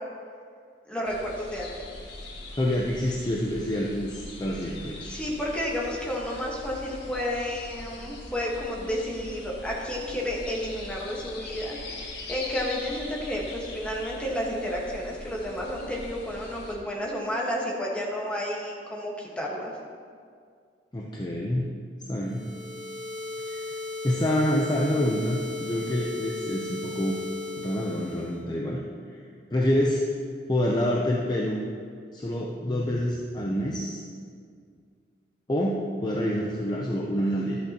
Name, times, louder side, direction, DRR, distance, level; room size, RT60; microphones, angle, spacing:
voice 1, 0.9-1.9 5.0-19.8, left 1 dB, 5° left, -3 dB, 1.4 m, -31 dB
sound 1, 1.0-16.7, left 2 dB, 65° left, 1.7 m, -42 dB
voice 2, 2.6-5.0 20.9-21.7 22.1-22.4 23.5-23.7 24.0-27.2 27.6-28.8 29.5-30.0 30.5-31.6 32.1-34.0 35.5-37.6, equal, 25° left, -2 dB, 0.6 m, -27 dB
sound 2, 22.2-28.4, left 2 dB, 30° right, 1.4 m, -36 dB
12.5 x 8.4 x 2.9 m, 2.1 s
head